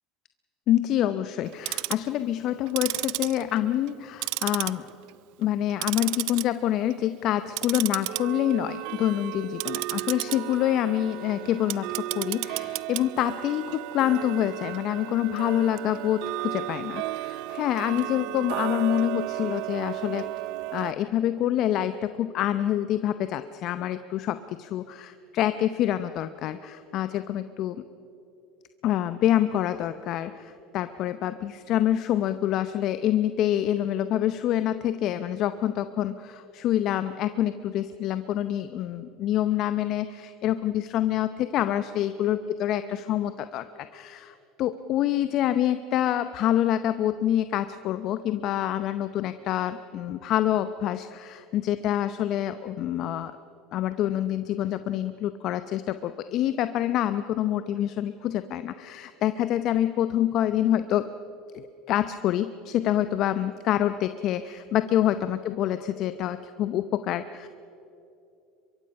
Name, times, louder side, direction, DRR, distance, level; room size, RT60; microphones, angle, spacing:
voice 1, 0.7-4.8 5.4-20.3 20.7-27.8 28.8-53.4 53.7-61.1 61.5-67.5, left 12 dB, 55° left, 12 dB, 0.7 m, -26 dB
Tick-tock, 1.5-2.1 2.7-4.0 4.2-5.1 5.4-6.4 6.8-7.1 7.5-20.9, right 20 dB, 70° right, 0.4 m, -33 dB
23.0 x 23.0 x 5.5 m, 2.7 s
hypercardioid pair, 80°, 0 cm